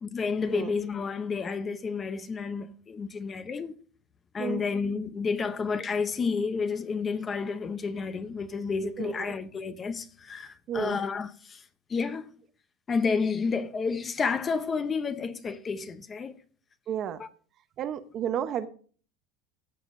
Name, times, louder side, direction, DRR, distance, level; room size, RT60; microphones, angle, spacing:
voice 1, 0.0-3.8 4.3-11.6 11.9-12.3 12.9-16.4 17.2-17.3, left 5 dB, 20° left, 0.7 m, -30 dB
voice 2, 9.0-9.3 10.7-11.0 16.9-17.2 17.8-18.7, right 9 dB, 35° right, 0.8 m, -32 dB
15.0 x 7.1 x 2.6 m
supercardioid pair, 160°, 0 cm